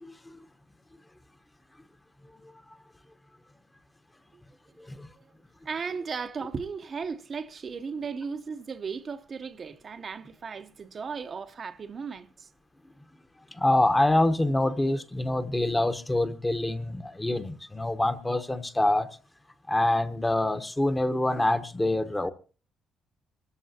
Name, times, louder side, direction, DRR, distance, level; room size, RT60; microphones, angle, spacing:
voice 1, 0.0-0.4 4.9-5.1 13.5-19.1 19.7-22.3, left 1 dB, 15° left, 1.0 m, -26 dB
voice 2, 5.6-12.5, right 5 dB, 45° right, 0.7 m, -36 dB
25.0 x 14.0 x 2.8 m
cardioid pair, 90°, 0 cm